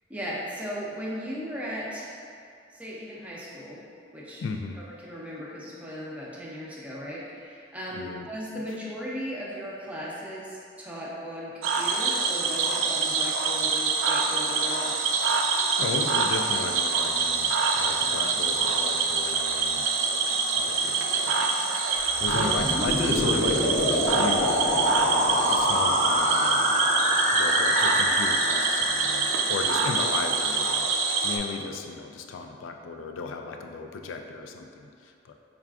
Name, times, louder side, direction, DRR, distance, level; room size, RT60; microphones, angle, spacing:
voice 1, 0.1-2.1 2.7-3.8 4.1-4.4 4.8-14.9 22.3-22.6, equal, 5° right, -6 dB, 0.5 m, -37 dB
voice 2, 4.4-4.8 7.9-8.3 15.7-19.9 20.6-21.0 22.2-24.6 25.3-26.7 27.3-30.9 31.2-35.3, left 4 dB, 75° left, 5 dB, 0.3 m, -35 dB
Cricket / Frog, 11.6-31.4, right 4 dB, 90° right, 0.4 m, -26 dB
sound 1, 22.1-30.0, equal, 35° left, 0.6 m, -25 dB
5.7 x 2.4 x 2.3 m, 2.4 s
head